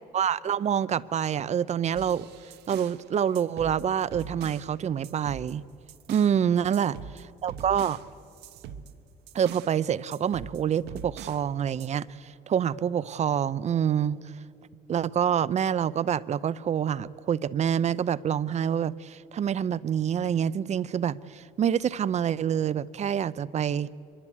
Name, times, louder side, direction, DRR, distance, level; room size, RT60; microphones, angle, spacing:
voice 1, 0.1-2.3 2.7-5.6 6.1-8.0 9.3-14.2 14.9-23.9, right 8 dB, 40° right, 0.6 m, -27 dB
sound 1, 1.9-3.0 3.3-4.7 5.0-6.4 6.7-9.8 10.1-11.5 11.8-11.9, right 7 dB, 80° right, 1.2 m, -43 dB
24.0 x 22.5 x 8.6 m
cardioid pair, 110°, 17 cm